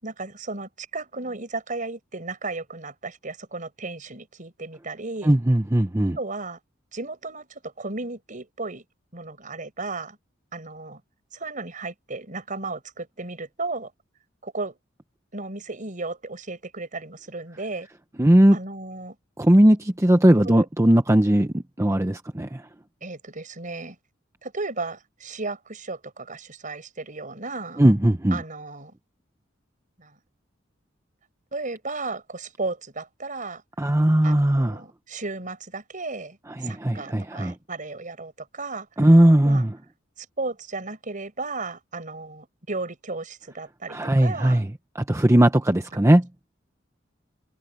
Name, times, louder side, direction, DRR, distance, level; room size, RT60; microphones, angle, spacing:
voice 1, 0.0-5.4 6.2-6.6 6.9-8.8 9.1-10.2 10.5-11.0 11.3-13.9 14.4-14.8 15.3-17.9 18.5-19.2 20.4-20.7 23.0-24.0 24.4-27.8 28.3-28.9 30.0-30.2 31.5-33.6 34.2-38.9 39.4-39.6 40.2-44.6 45.9-46.2, right 3 dB, 45° right, 5.7 m, -34 dB
voice 2, 5.2-6.2 18.2-18.6 19.4-22.7 27.8-28.4 33.8-34.8 36.5-37.5 39.0-39.8 43.9-46.3, right 1 dB, 15° right, 0.8 m, -18 dB
head